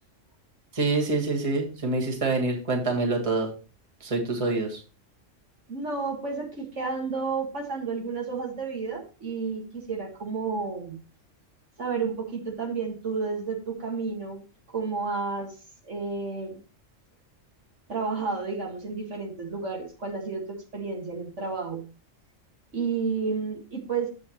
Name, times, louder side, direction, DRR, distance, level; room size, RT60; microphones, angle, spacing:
voice 1, 0.7-3.5 4.0-4.8, right 3 dB, 25° right, 0 dB, 1.7 m, -26 dB
voice 2, 5.7-11.0 11.8-14.4 14.7-15.5 15.8-16.6 17.9-21.8 22.7-24.1, right 4 dB, 70° right, 0 dB, 2.2 m, -31 dB
9.1 x 7.2 x 3.0 m, 0.34 s
omnidirectional pair, 1.3 m